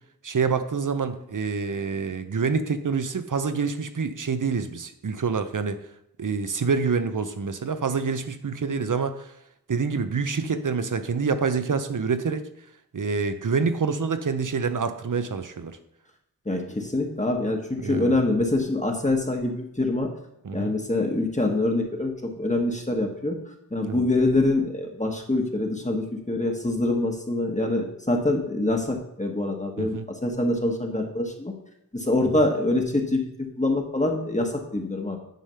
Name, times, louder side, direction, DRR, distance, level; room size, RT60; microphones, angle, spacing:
voice 1, 0.2-5.8 6.2-9.3 9.7-12.4 12.9-15.8 17.8-18.2 20.4-20.8 23.8-24.0 29.8-30.1 32.4-32.5, right 5 dB, 60° right, 9 dB, 0.7 m, -27 dB
voice 2, 16.5-20.1 20.5-23.4 23.7-30.0 30.2-31.5 31.9-33.2 33.6-35.2, left 2 dB, 20° left, 2 dB, 1.1 m, -25 dB
9.2 x 3.3 x 5.5 m, 0.80 s
wide cardioid pair, 70°, 36 cm